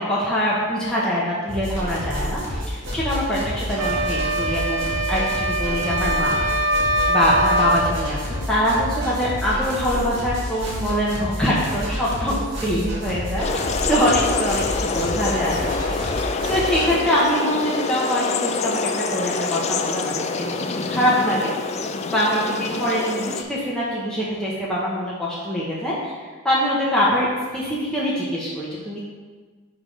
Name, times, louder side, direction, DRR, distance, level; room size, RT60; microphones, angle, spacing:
voice 1, 0.0-6.7 7.1-12.4 12.6-21.5 22.1-26.1 26.4-27.3 27.5-29.0, equal, 5° left, -8 dB, 1.0 m, -24 dB
sound 1, 1.5-17.0, equal, 60° right, 1.8 m, -29 dB
sound 2, 3.8-8.0, right 1 dB, 75° right, 0.5 m, -22 dB
sound 3, 13.4-23.4, left 4 dB, 35° left, 0.4 m, -26 dB
10.5 x 3.7 x 3.3 m, 1.4 s
head